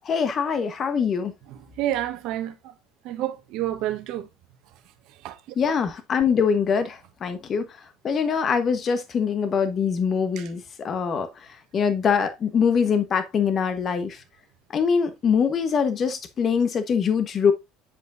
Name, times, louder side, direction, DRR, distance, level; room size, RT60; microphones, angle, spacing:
voice 1, 0.0-1.3 5.6-7.6 8.0-11.3 11.7-14.2 14.7-17.5, left 6 dB, 40° left, 1.2 m, -23 dB
voice 2, 1.5-2.7 3.0-4.3 5.2-5.4 10.4-10.5, right 13 dB, 65° right, 1.3 m, -29 dB
10.0 x 5.2 x 2.6 m
hypercardioid pair, 75°, 0 cm